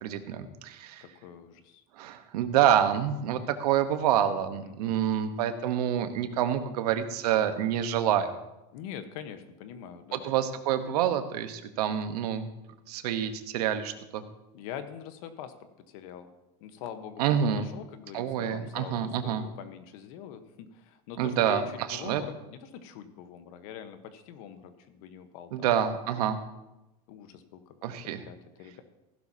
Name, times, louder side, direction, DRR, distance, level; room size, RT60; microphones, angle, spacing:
voice 1, 0.0-1.0 2.0-8.3 10.1-12.5 12.9-14.2 17.2-17.7 18.1-19.5 21.2-22.2 25.5-26.4 27.8-28.2, right 9 dB, 85° right, 9 dB, 1.1 m, -27 dB
voice 2, 1.0-1.8 4.6-5.4 8.7-10.3 14.5-16.3 16.6-25.7 27.1-28.0 28.2-28.8, left 9 dB, 65° left, 9 dB, 1.2 m, -44 dB
15.5 x 11.5 x 2.8 m, 0.96 s
supercardioid pair, 145°, 20 cm